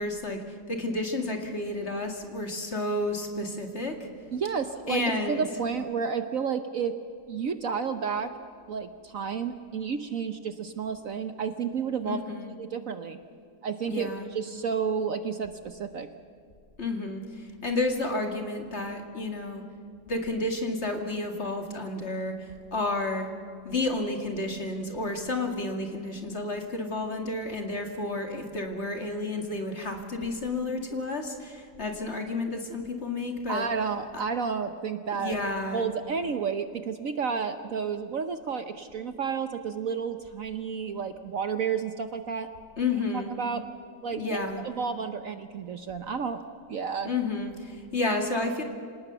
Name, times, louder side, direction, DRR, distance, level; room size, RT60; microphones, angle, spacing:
voice 1, 0.0-4.0 4.9-5.4 12.1-12.5 13.9-14.3 16.8-19.6 20.1-23.3 23.6-33.7 35.2-35.8 42.8-43.3 44.1-44.6 47.0-48.6, left 2 dB, 40° left, 4 dB, 2.4 m, -31 dB
voice 2, 4.3-6.9 7.3-8.3 8.7-12.2 12.6-13.2 13.6-16.1 33.5-35.4 35.7-42.5 43.1-43.6 44.0-46.4 46.7-47.1, right 6 dB, 55° right, 9 dB, 1.1 m, -31 dB
26.5 x 18.5 x 6.9 m, 2.3 s
omnidirectional pair, 1.9 m